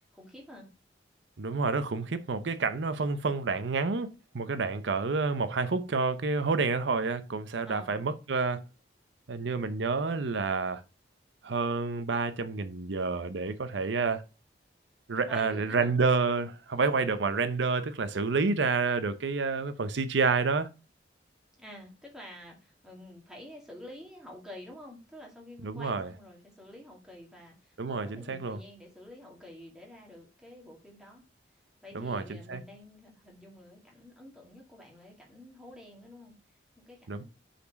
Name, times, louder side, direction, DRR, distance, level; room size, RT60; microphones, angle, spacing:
voice 1, 0.1-0.7 7.7-8.0 15.3-16.0 21.6-31.2 31.8-36.4 36.8-37.2, left 1 dB, 5° right, 2.0 m, -49 dB
voice 2, 1.4-4.1 4.3-8.6 9.3-10.8 11.4-14.2 15.1-20.7 25.6-26.1 27.8-28.6 31.9-32.6 37.1-37.2, right 4 dB, 85° right, 0.6 m, -29 dB
5.7 x 4.2 x 5.1 m
head